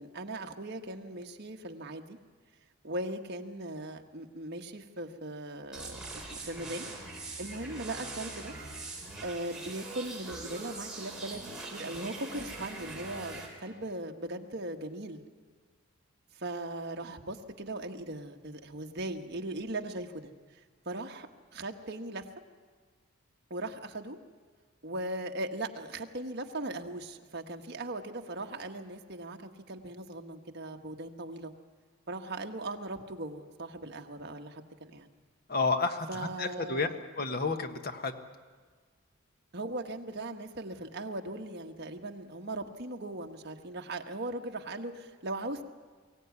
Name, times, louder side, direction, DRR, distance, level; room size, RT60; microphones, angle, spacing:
voice 1, 0.0-2.2 2.8-6.9 7.4-8.5 9.2-15.2 16.4-20.3 20.8-21.3 21.5-22.3 23.5-24.2 24.8-31.5 32.1-35.1 36.1-37.0 39.5-45.6, right 2 dB, 50° right, 4 dB, 1.4 m, -39 dB
sound 1, 5.7-13.5, right 2 dB, 5° right, 3.9 m, -42 dB
voice 2, 35.5-36.9 37.2-38.1, left 4 dB, 45° left, 7 dB, 1.4 m, -30 dB
23.0 x 16.0 x 9.5 m, 1.5 s
head